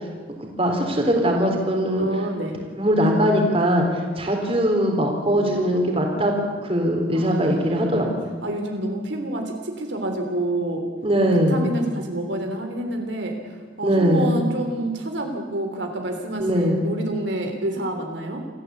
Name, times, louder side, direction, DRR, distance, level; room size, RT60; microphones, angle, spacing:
voice 1, 0.3-2.1 2.7-6.3 6.6-8.3 11.0-11.6 13.8-14.3 16.4-16.8, equal, 30° right, 2 dB, 3.9 m, -21 dB
voice 2, 2.0-2.6 5.3-6.0 7.1-7.6 8.4-10.9 11.5-18.4, right 1 dB, 70° right, 3 dB, 3.3 m, -28 dB
27.5 x 16.0 x 8.4 m, 1.5 s
head